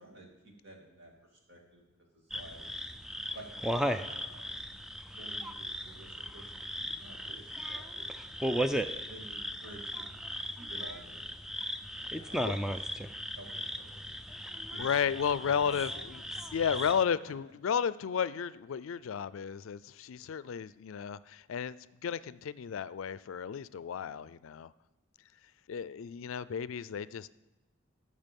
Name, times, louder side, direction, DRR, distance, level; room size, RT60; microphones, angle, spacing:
voice 1, 0.0-1.8 2.2-2.6 3.3-4.5 5.1-8.3 9.1-11.3 12.0-12.8 13.3-14.1 14.7-15.8 16.3-16.4, right 1 dB, 60° right, 1 dB, 2.4 m, -52 dB
sound 1, 2.3-17.0, equal, 5° right, 0.3 m, -37 dB
voice 2, 14.8-16.2 16.5-24.7 25.7-27.3, left 7 dB, 85° left, 17 dB, 0.4 m, -33 dB
14.5 x 6.6 x 5.3 m, 1.0 s
head